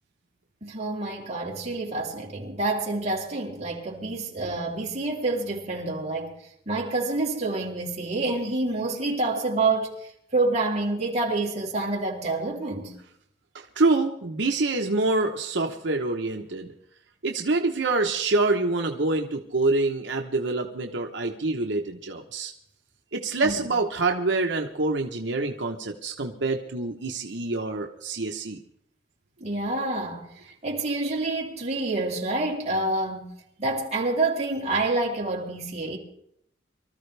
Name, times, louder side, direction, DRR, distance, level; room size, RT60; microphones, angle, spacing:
voice 1, 0.6-6.3 6.7-9.9 10.3-12.9 23.4-23.7 29.4-30.3 30.6-33.2 33.6-36.0, right 2 dB, 35° right, 3.3 m, -27 dB
voice 2, 13.5-16.7 17.2-22.5 23.1-28.6, right 3 dB, 75° right, 1.0 m, -26 dB
24.5 x 13.5 x 3.4 m
head